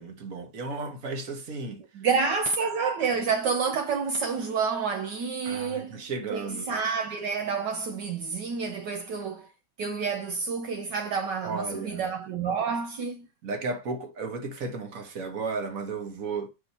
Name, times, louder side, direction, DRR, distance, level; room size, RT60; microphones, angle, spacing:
voice 1, 0.0-1.8 5.4-6.7 11.4-12.0 13.4-16.5, right 4 dB, 45° right, 1.7 m, -34 dB
voice 2, 1.9-9.5 9.8-13.3, right 5 dB, 70° right, 1.4 m, -29 dB
7.8 x 5.7 x 4.2 m
omnidirectional pair, 2.1 m